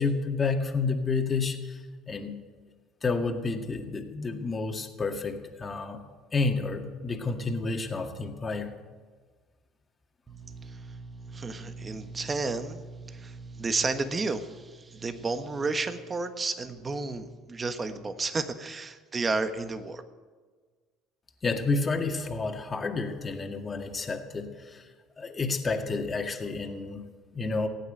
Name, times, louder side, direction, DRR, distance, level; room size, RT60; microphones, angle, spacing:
voice 1, 0.0-2.4 3.0-6.0 6.3-8.7 21.4-24.9 25.2-27.7, left 4 dB, 30° left, 3 dB, 2.0 m, -30 dB
voice 2, 10.3-20.0, right 3 dB, 30° right, 9 dB, 1.3 m, -32 dB
16.0 x 8.9 x 9.2 m, 1.5 s
hypercardioid pair, 70°, 0 cm